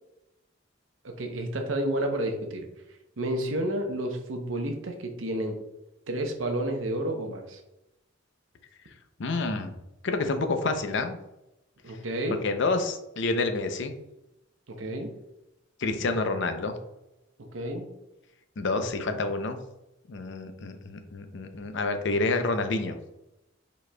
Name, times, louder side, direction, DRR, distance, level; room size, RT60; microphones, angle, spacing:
voice 1, 1.0-2.7 3.2-5.6 6.1-7.6 11.8-12.4 14.7-15.1 17.4-17.9, right 1 dB, 85° right, 4 dB, 0.8 m, -30 dB
voice 2, 9.2-9.8 10.0-11.2 12.4-13.9 15.8-16.8 18.6-19.6 20.1-23.0, left 3 dB, 65° left, 7 dB, 0.6 m, -28 dB
5.1 x 4.2 x 2.2 m, 0.91 s
head